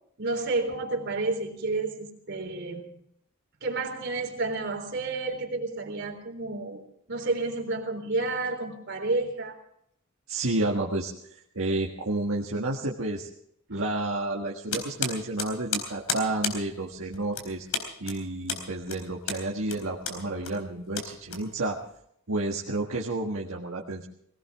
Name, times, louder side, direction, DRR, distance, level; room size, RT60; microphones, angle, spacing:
voice 1, 0.2-2.9 3.6-6.8 7.1-9.6 13.7-13.8, right 3 dB, 55° right, 2 dB, 3.8 m, -30 dB
voice 2, 10.3-13.3 13.7-17.7 18.0-21.8 22.3-24.1, right 2 dB, 70° right, -2 dB, 1.7 m, -30 dB
sound 1, 14.7-21.9, left 5 dB, 90° left, 4.0 m, -34 dB
20.5 x 18.5 x 3.6 m, 0.71 s
head